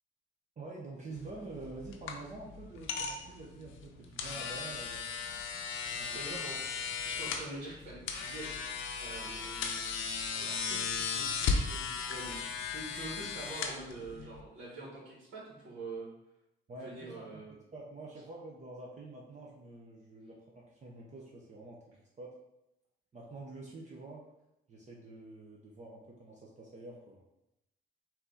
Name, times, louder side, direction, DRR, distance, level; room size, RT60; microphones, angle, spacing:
voice 1, 0.6-5.0 5.8-6.2 16.7-17.4 17.7-21.8 22.2-22.4 23.1-24.2 24.7-27.2, right 2 dB, 35° right, -3 dB, 0.9 m, -47 dB
sound 1, 1.1-14.4, left 5 dB, 85° left, 0.6 m, -36 dB
voice 2, 6.1-6.6 7.0-10.0 10.3-16.1 16.8-17.5, right 2 dB, 70° right, -5 dB, 1.6 m, -45 dB
4.5 x 2.8 x 3.9 m, 0.88 s
cardioid pair, 90°, 20 cm